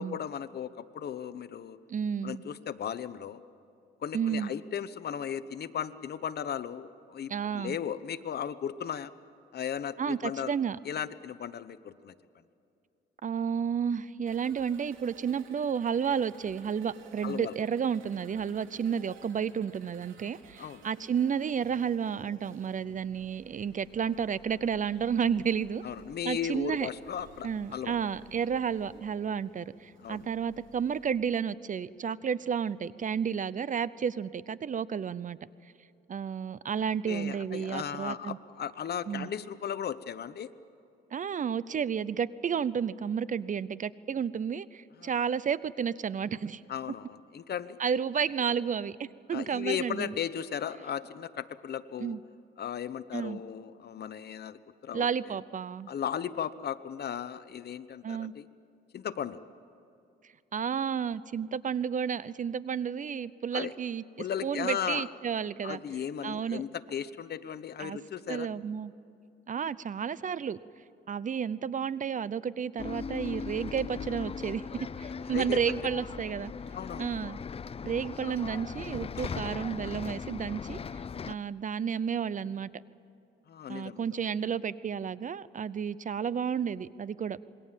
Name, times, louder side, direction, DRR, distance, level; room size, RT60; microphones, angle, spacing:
voice 1, 0.0-1.8 2.2-3.4 4.0-9.1 9.5-10.5 10.8-12.1 17.2-17.5 20.6-20.8 25.8-28.0 30.0-30.2 37.0-40.5 45.0-45.1 46.7-47.8 49.3-52.2 52.6-55.1 55.9-58.5 58.9-59.4 63.5-63.7 64.2-65.1 65.6-68.5 75.3-75.6 76.7-77.1 79.2-79.3 83.5-84.1, left 8 dB, 55° left, 14 dB, 1.0 m, -36 dB
voice 2, 1.9-2.4 4.1-4.5 7.3-7.8 10.0-10.8 13.2-25.8 26.2-26.9 27.4-35.4 36.1-38.4 39.1-39.3 41.1-46.6 47.8-49.0 49.3-50.1 52.0-52.2 53.1-53.4 54.9-55.9 58.0-58.3 60.5-64.0 64.4-65.8 66.2-66.6 67.8-68.0 68.3-68.9 69.5-70.6 71.1-74.6 75.0-76.5 77.0-77.4 77.8-81.0 81.3-82.7 83.7-87.4, right 7 dB, 40° right, 18 dB, 0.6 m, -31 dB
sound 1, 14.3-31.2, right 6 dB, 85° right, 2.7 m, -56 dB
sound 2, 23.1-29.1, right 3 dB, 60° right, 4.3 m, -58 dB
Bus, 72.8-81.3, left 6 dB, 30° left, 0.5 m, -39 dB
26.5 x 22.0 x 7.5 m, 2.6 s
cardioid pair, 90°, 20 cm